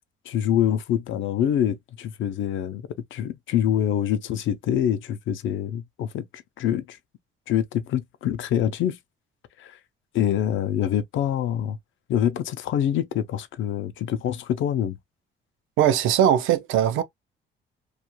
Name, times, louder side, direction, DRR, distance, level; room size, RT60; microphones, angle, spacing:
voice 1, 0.3-7.0 7.5-9.0 9.6-9.8 10.1-11.8 12.1-15.0, left 10 dB, 75° left, 0.5 m, -25 dB
voice 2, 15.8-17.0, right 10 dB, 85° right, 0.5 m, -20 dB
2.4 x 2.2 x 2.8 m
cardioid pair, 90°, 20 cm